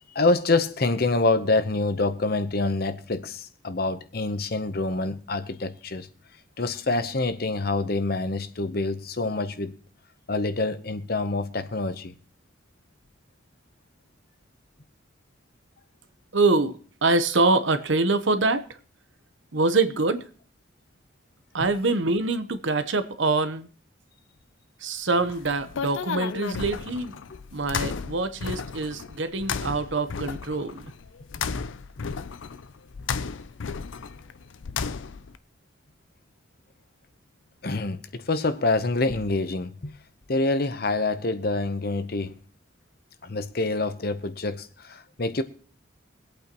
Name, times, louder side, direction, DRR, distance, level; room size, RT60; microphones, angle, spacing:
voice 1, 0.1-6.1 6.6-9.7 10.3-12.1 27.3-27.4 37.6-39.9 40.3-42.3 43.2-45.4, left 2 dB, 50° left, 0.9 m, -26 dB
voice 2, 16.3-18.6 19.5-20.2 21.5-23.7 24.8-27.1 27.5-30.9, right 3 dB, 75° right, 1.0 m, -24 dB
sound 1, 25.2-35.4, left 5 dB, 80° left, 0.5 m, -34 dB
23.0 x 8.6 x 3.0 m
head